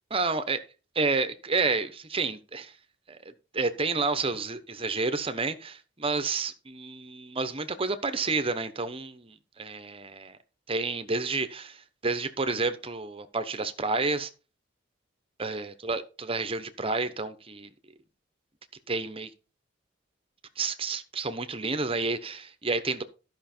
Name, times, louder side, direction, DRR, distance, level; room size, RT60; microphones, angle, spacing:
voice 1, 0.1-0.6 0.9-2.7 3.1-10.4 10.7-14.3 15.4-17.7 18.9-19.3 20.6-23.0, right 3 dB, 30° right, 1.0 m, -30 dB
13.0 x 6.0 x 4.4 m
head